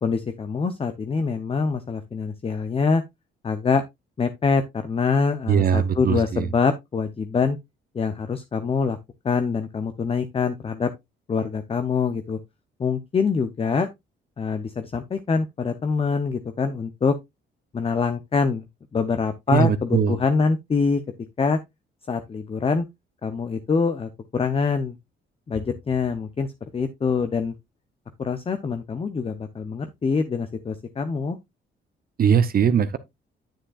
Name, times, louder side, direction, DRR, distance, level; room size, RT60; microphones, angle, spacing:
voice 1, 0.0-3.0 3.4-3.8 4.2-7.6 7.9-9.0 9.2-10.9 11.3-12.4 12.8-13.9 14.4-17.2 17.7-18.7 18.9-21.0 21.4-21.6 22.1-22.9 23.2-25.0 25.5-26.5 26.7-27.5 28.2-31.4, left 5 dB, 30° left, 0.7 m, -24 dB
voice 2, 5.5-6.5 19.5-20.2 32.2-33.0, right 8 dB, 50° right, 0.7 m, -20 dB
9.0 x 7.3 x 2.4 m
cardioid pair, 90°, 20 cm